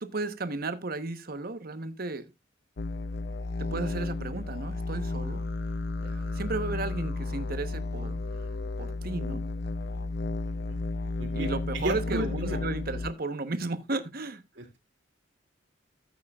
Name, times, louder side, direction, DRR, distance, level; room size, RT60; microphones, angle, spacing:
voice 1, 0.0-2.3 3.6-5.4 6.0-8.2 8.8-9.4 11.3-14.7, right 3 dB, 50° right, 1.0 m, -34 dB
sound 1, 2.8-13.1, left 3 dB, 55° left, 0.6 m, -33 dB
voice 2, 11.7-12.6 14.6-14.8, right 1 dB, 65° right, 2.5 m, -33 dB
13.5 x 8.4 x 2.4 m
head